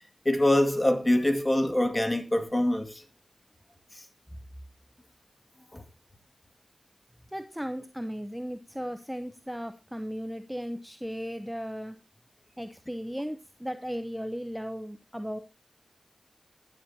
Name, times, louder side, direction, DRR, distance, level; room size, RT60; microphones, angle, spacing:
voice 1, 0.3-3.0 3.9-4.0 5.7-5.8, left 1 dB, 25° left, 2.1 m, -24 dB
voice 2, 7.3-12.0 12.6-15.4, equal, 5° right, 0.8 m, -36 dB
21.0 x 7.5 x 2.8 m
cardioid pair, 40°, 0 cm